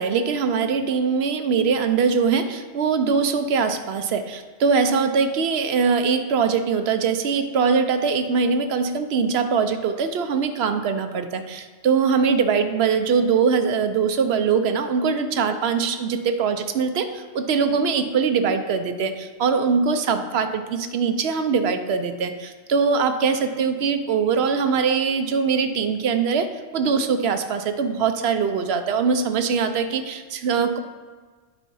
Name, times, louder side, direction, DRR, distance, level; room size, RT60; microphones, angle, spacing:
voice 1, 0.0-26.5 26.7-30.8, right 5 dB, 70° right, 8 dB, 0.9 m, -22 dB
9.2 x 4.2 x 5.4 m, 1.4 s
omnidirectional pair, 1.1 m